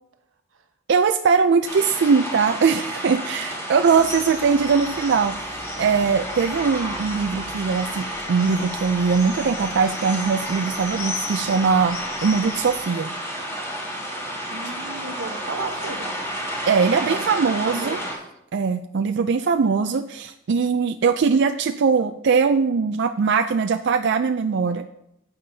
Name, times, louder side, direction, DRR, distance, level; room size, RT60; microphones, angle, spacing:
voice 1, 0.9-13.1 16.7-18.0 18.5-24.8, right 5 dB, 60° right, 6 dB, 0.4 m, -21 dB
sound 1, 1.6-18.1, equal, 15° left, 3.0 m, -31 dB
sound 2, 3.8-12.9, left 3 dB, 50° left, 3.3 m, -38 dB
voice 2, 14.5-16.1 17.0-18.1, right 3 dB, 85° right, 6 dB, 1.1 m, -34 dB
14.0 x 9.2 x 2.7 m, 0.82 s
head